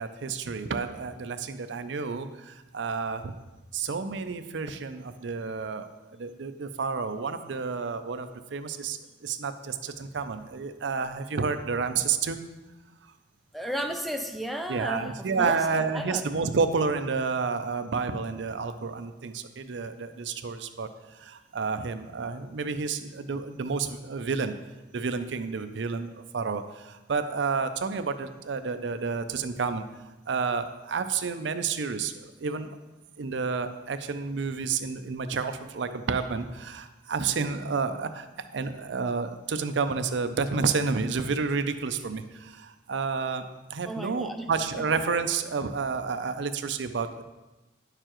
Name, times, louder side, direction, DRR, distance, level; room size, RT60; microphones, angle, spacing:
voice 1, 0.0-3.3 3.7-12.4 14.7-20.9 21.1-24.5 24.9-29.8 30.3-32.8 33.2-38.3 38.5-47.2, right 5 dB, 75° right, 9 dB, 0.5 m, -30 dB
voice 2, 13.5-15.6 15.9-16.2 43.8-44.4, right 1 dB, ahead, 5 dB, 0.4 m, -33 dB
9.7 x 6.7 x 3.0 m, 1.1 s
head